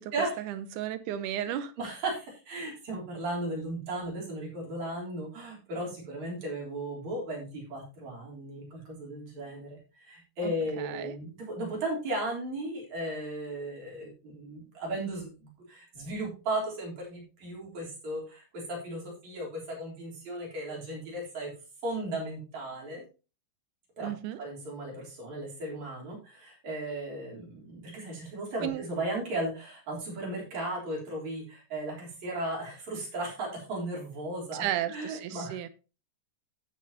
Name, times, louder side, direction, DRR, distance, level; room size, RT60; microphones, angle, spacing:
voice 1, 0.4-1.7 10.4-11.2 24.0-24.4 28.6-28.8 34.5-35.7, right 12 dB, 80° right, 2.1 m, -34 dB
voice 2, 1.4-21.5 21.8-23.0 24.0-24.1 24.4-35.7, right 1 dB, 60° right, 4.8 m, -36 dB
16.5 x 6.3 x 2.8 m
omnidirectional pair, 3.8 m